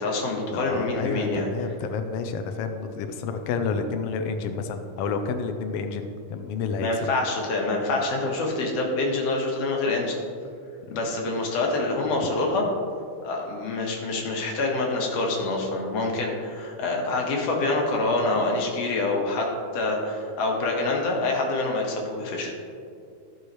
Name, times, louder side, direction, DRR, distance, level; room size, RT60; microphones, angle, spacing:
voice 1, 0.0-1.5 6.8-10.2 10.9-12.6 13.2-19.5 19.7-22.5, left 2 dB, 65° left, -1 dB, 2.2 m, -26 dB
voice 2, 0.5-7.1 12.2-12.3, left 5 dB, 85° left, 6 dB, 1.3 m, -30 dB
14.5 x 6.4 x 3.1 m, 2.4 s
omnidirectional pair, 3.4 m